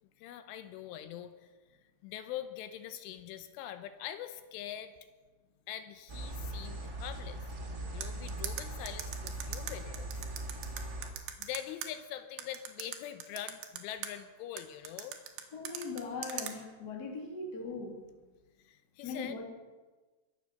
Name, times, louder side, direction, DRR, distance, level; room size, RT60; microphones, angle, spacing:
voice 1, 0.0-1.5 2.0-4.9 5.7-10.1 11.4-15.2 18.6-19.4, left 11 dB, 80° left, 9 dB, 3.1 m, -43 dB
sound 1, 6.1-11.1, right 1 dB, 40° right, 1.3 m, -40 dB
sound 2, 8.0-11.9 12.4-14.1 14.6-16.5, right 10 dB, 70° right, 2.7 m, -40 dB
voice 2, 15.5-18.1 19.0-19.5, left 3 dB, 50° left, 1 dB, 1.1 m, -40 dB
22.5 x 8.6 x 6.6 m, 1.3 s
omnidirectional pair, 5.9 m